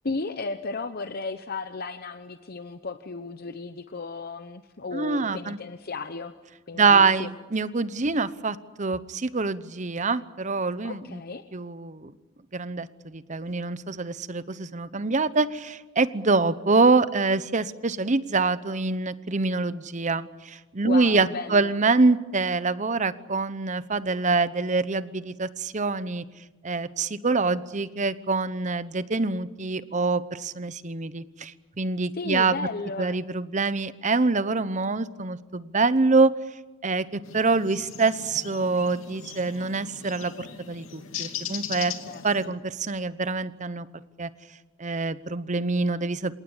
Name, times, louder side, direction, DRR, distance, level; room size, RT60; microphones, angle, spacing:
voice 1, 0.0-6.3 6.7-7.3 10.8-11.4 16.4-16.5 20.8-21.8 32.1-33.2 42.1-42.5, left 3 dB, 50° left, 9 dB, 0.9 m, -34 dB
voice 2, 4.9-5.6 6.7-11.2 11.5-12.1 12.5-26.2 26.6-32.6 33.0-36.3 36.8-41.9 42.2-43.9 44.2-44.3 44.8-46.4, right 3 dB, 35° right, 15 dB, 0.9 m, -25 dB
sound 1, 37.2-42.5, left 7 dB, 85° left, 2.7 m, -38 dB
27.5 x 18.5 x 9.7 m, 1.2 s
head